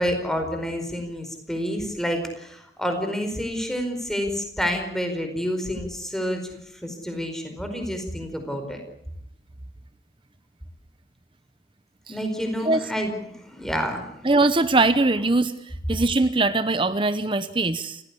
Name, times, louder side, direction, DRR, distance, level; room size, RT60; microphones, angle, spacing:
voice 1, 0.0-6.4 6.8-8.8 12.1-14.3, equal, 5° left, 5 dB, 4.9 m, -28 dB
voice 2, 14.2-15.5 15.9-18.0, right 2 dB, 30° right, 12 dB, 0.9 m, -21 dB
29.0 x 16.0 x 8.5 m, 0.77 s
head